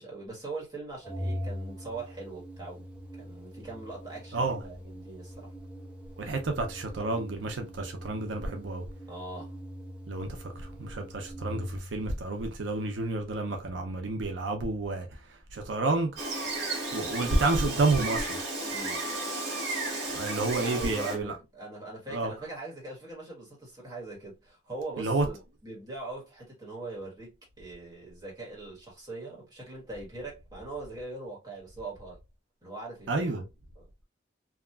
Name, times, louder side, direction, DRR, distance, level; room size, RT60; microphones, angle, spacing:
voice 1, 0.0-2.9 3.2-5.5 9.1-9.6 18.7-19.0 20.6-32.2 32.6-33.3 33.8-34.0, right 3 dB, 20° right, 1.4 m, -41 dB
Organ, 1.0-12.0, equal, 5° right, 0.6 m, -42 dB
voice 2, 6.2-8.8 10.1-16.1 16.9-18.4 20.1-21.3 22.1-22.3 25.0-25.2 33.1-33.4, right 2 dB, 90° right, 0.6 m, -30 dB
Gull seagull, 16.2-21.2, right 2 dB, 65° right, 1.2 m, -33 dB
2.8 x 2.4 x 2.2 m
head